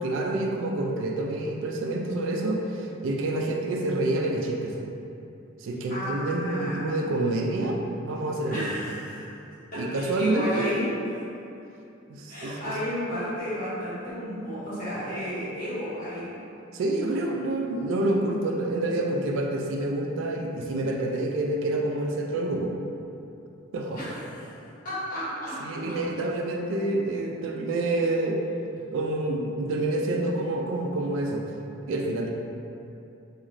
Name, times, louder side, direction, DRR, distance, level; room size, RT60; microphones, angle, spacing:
voice 1, 0.0-4.7 5.6-8.7 9.7-10.8 12.1-12.8 16.7-22.7 23.7-24.2 25.6-28.4 28.9-31.4 31.9-32.3, right 2 dB, 70° right, 1 dB, 0.3 m, -28 dB
voice 2, 5.9-7.0 8.5-9.2 9.7-10.9 12.3-16.3 23.9-24.5 24.8-25.5, equal, 45° left, -13 dB, 1.3 m, -32 dB
2.5 x 2.4 x 3.0 m, 2.7 s
head